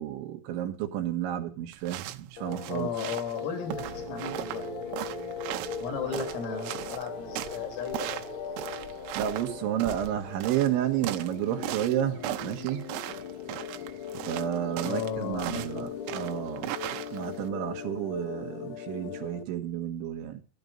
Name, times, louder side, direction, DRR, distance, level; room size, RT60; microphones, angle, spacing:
voice 1, 0.0-2.9 9.1-12.9 14.3-16.7 17.1-20.4, right 11 dB, 70° right, 3.6 m, -31 dB
sound 1, 1.7-17.5, right 15 dB, 90° right, 3.5 m, -38 dB
sound 2, 2.4-19.4, left 9 dB, 65° left, 2.9 m, -40 dB
voice 2, 2.6-3.8 4.1-5.0 5.8-8.3 14.8-16.5, left 6 dB, 85° left, 6.2 m, -35 dB
sound 3, 3.7-18.6, right 5 dB, 40° right, 5.0 m, -47 dB
13.5 x 12.0 x 5.3 m
omnidirectional pair, 5.8 m